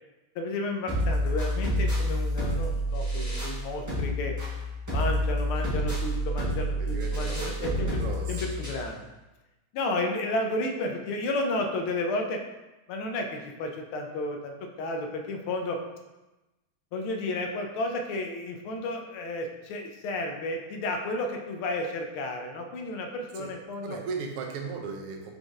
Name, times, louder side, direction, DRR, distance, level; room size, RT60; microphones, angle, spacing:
voice 1, 0.3-4.3 4.9-8.0 8.3-9.0 9.7-12.4 12.9-15.8 16.9-24.0, left 2 dB, 80° left, 3 dB, 1.4 m, -32 dB
sound 1, 0.9-8.9, equal, 15° right, 0.6 m, -29 dB
voice 2, 6.8-8.6 23.3-23.6 23.8-25.3, right 5 dB, 85° right, 3 dB, 1.6 m, -37 dB
5.2 x 3.8 x 2.4 m, 1.1 s
omnidirectional pair, 2.4 m